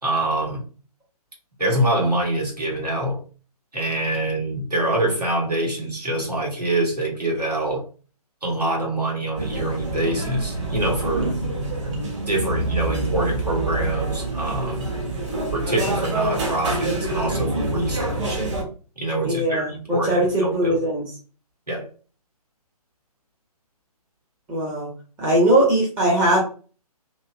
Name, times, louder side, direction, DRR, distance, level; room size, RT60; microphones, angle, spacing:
voice 1, 0.0-0.6 1.6-3.2 3.7-7.8 8.4-11.4 12.3-14.9 15.5-18.4 19.0-20.8 21.7-21.8, right 1 dB, 90° right, -1 dB, 1.5 m, -25 dB
sound 1, 9.3-18.6, right 2 dB, 50° right, 1.2 m, -26 dB
voice 2, 19.2-21.0 24.5-24.9 25.2-26.4, right 1 dB, 10° right, -4 dB, 0.5 m, -20 dB
2.9 x 2.7 x 2.2 m, 0.37 s
figure-of-eight pair, 135°, 20 cm